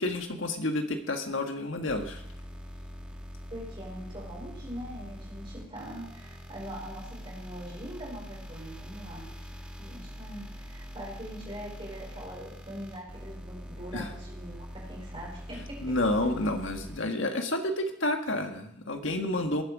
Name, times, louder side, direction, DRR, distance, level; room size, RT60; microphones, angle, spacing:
voice 1, 0.0-2.2 13.9-14.1 15.8-19.6, left 1 dB, 70° left, 5 dB, 1.7 m, -30 dB
sound 1, 1.9-17.0, equal, 5° right, 1.8 m, -43 dB
voice 2, 3.5-9.5 9.8-15.9, equal, 25° right, -4 dB, 5.2 m, -42 dB
19.5 x 9.5 x 5.0 m, 0.75 s
head